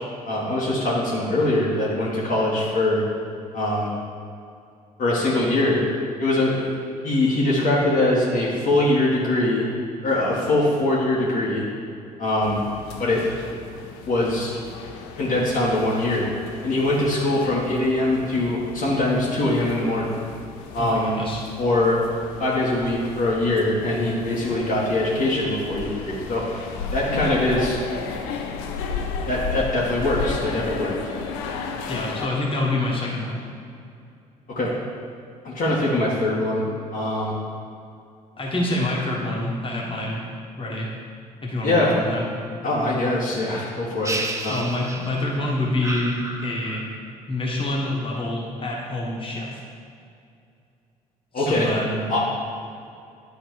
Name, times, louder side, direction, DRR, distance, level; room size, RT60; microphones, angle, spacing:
voice 1, 0.2-3.0 3.5-3.9 5.0-5.8 6.2-6.7 7.0-9.6 10.0-11.6 12.2-12.6 13.0-13.2 14.1-14.5 15.2-16.3 16.6-20.1 20.7-21.1 21.6-22.0 22.4-26.7 26.9-27.8 29.3-30.9 34.5-34.7 35.4-36.6 36.9-37.4 41.6-42.0 42.6-44.1 44.4-44.6 51.3-51.7 52.1-52.2, left 1 dB, 45° left, -6 dB, 1.6 m, -22 dB
sound 1, 12.4-32.3, left 5 dB, 65° left, 0.6 m, -34 dB
voice 2, 20.8-21.4 31.9-33.4 38.4-40.2 40.6-40.9 41.4-42.3 43.7-43.8 44.5-46.8 47.3-49.6 51.3-52.0, left 1 dB, 25° left, -3 dB, 1.7 m, -27 dB
sound 2, 44.0-45.4 45.8-47.1, right 2 dB, 15° right, 0.6 m, -32 dB
10.5 x 3.9 x 4.7 m, 2.5 s
figure-of-eight pair, 50°, 20 cm